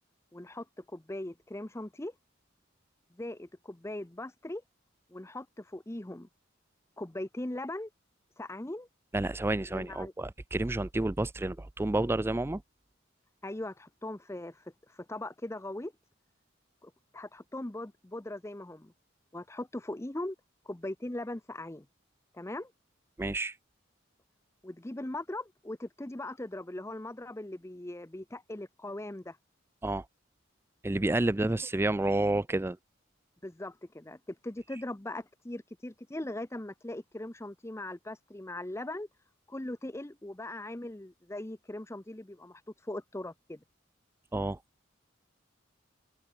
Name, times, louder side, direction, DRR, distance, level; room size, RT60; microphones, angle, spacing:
voice 1, 0.3-2.1 3.1-4.6 5.1-6.3 7.0-7.9 8.4-8.9 9.6-10.1 13.4-15.9 16.8-18.9 19.3-20.4 20.6-21.9 22.3-22.7 24.6-29.4 33.4-39.1 39.5-43.6, left 1 dB, 15° left, 0.7 m, -40 dB
voice 2, 9.1-12.6 23.2-23.6 29.8-30.1 30.8-32.8 44.3-44.6, right 2 dB, 10° right, 0.4 m, -30 dB
head